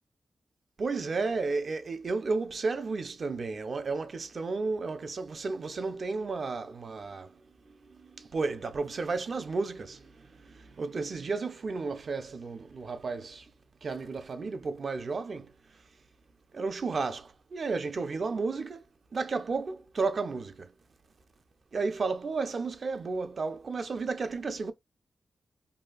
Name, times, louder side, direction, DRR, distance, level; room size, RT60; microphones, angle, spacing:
voice 1, 0.8-7.4 7.8-13.5 13.8-15.5 16.5-18.8 19.1-20.7 21.7-24.7, right 4 dB, 60° right, 0.5 m, -33 dB
2.7 x 2.4 x 2.3 m
cardioid pair, 65°, 0 cm